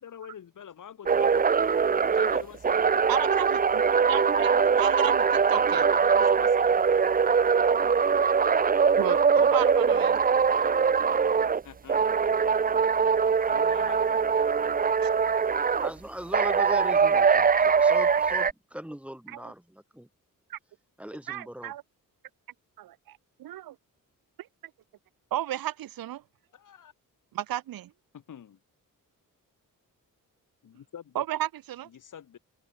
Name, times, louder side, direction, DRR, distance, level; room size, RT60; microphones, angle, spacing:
voice 1, 0.0-1.4 2.1-3.1 5.7-7.0 10.5-12.2 13.5-14.2 21.6-21.7 26.5-26.9 28.1-28.6 30.6-31.2 31.9-32.4, left 8 dB, 65° left, 3.7 m, -46 dB
sound 1, 1.1-11.6 11.9-15.9 16.3-18.5, right 6 dB, 25° right, 0.6 m, -22 dB
voice 2, 3.1-5.8 9.0-10.2 15.0-15.1 19.3-19.5 20.5-20.6 21.3-21.8 22.8-23.8 24.4-24.5 25.3-26.2 27.3-27.9 31.1-31.9, right 13 dB, 90° right, 0.8 m, -34 dB
voice 3, 15.8-20.1 21.0-21.7, equal, 5° right, 3.5 m, -39 dB
open air
wide cardioid pair, 165°, 34 cm